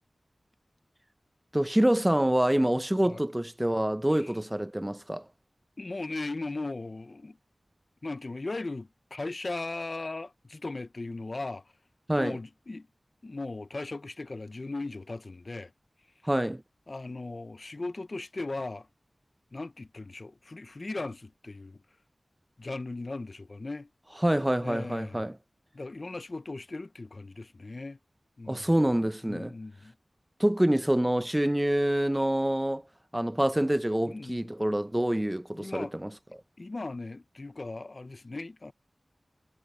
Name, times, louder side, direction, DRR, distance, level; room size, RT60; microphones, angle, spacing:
voice 1, 1.5-5.3 12.1-12.4 16.3-16.6 24.2-25.4 28.5-29.5 30.4-32.8 33.1-36.1, right 1 dB, 15° right, 0.8 m, -26 dB
voice 2, 5.8-7.4 8.0-11.7 12.2-12.9 13.2-15.7 16.9-18.9 19.5-21.8 22.6-23.9 24.6-25.3 25.7-28.0 28.4-28.7 29.2-29.9 34.0-34.5 35.5-35.9 36.6-38.7, left 2 dB, 55° left, 0.8 m, -38 dB
cardioid pair, 45°, 0 cm